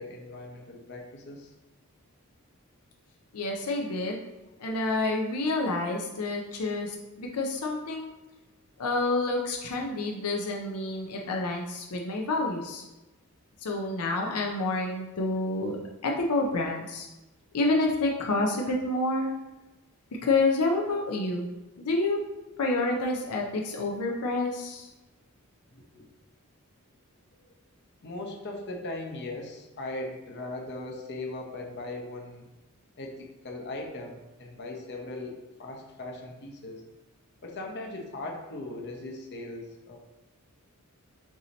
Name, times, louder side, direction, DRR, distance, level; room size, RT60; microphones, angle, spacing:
voice 1, 0.0-1.5 25.7-26.1 27.4-27.5 28.0-32.5 33.0-36.8 37.4-40.0, left 2 dB, 50° left, 1 dB, 0.8 m, -39 dB
voice 2, 3.3-4.2 4.6-8.1 8.8-12.8 13.6-15.8 16.0-17.1 17.5-19.3 20.2-21.5 21.8-22.2 22.6-24.9, left 2 dB, 90° left, 0 dB, 0.6 m, -28 dB
4.7 x 2.8 x 3.9 m, 1.0 s
head